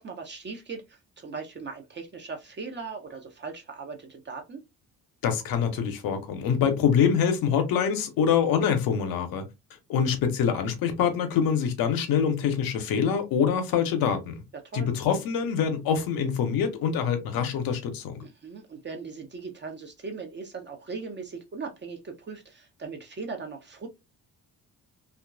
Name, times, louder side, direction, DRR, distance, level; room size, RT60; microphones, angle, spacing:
voice 1, 0.0-4.6 14.5-14.9 18.2-23.9, right 4 dB, 25° right, 0.6 m, -39 dB
voice 2, 5.2-9.4 9.9-14.4 14.7-18.2, left 7 dB, 50° left, 0.7 m, -25 dB
2.9 x 2.4 x 2.3 m
figure-of-eight pair, 45°, 47 cm